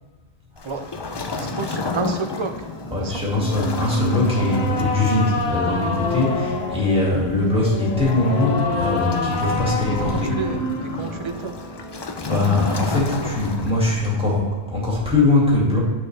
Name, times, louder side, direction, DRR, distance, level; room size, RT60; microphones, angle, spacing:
Waves surf, 0.6-14.2, left 4 dB, 45° left, 0.3 m, -33 dB
sound 1, 0.9-12.3, left 1 dB, 20° left, 0.9 m, -38 dB
voice 1, 1.2-2.7 3.0-3.1 10.0-11.5 12.1-12.2, right 4 dB, 35° right, 6 dB, 0.5 m, -30 dB
voice 2, 2.9-10.4 12.2-15.8, left 2 dB, 5° right, -5 dB, 2.1 m, -21 dB
sound 2, 3.3-11.3, left 2 dB, 75° left, 1.2 m, -27 dB
8.1 x 6.4 x 3.3 m, 1.3 s
omnidirectional pair, 1.1 m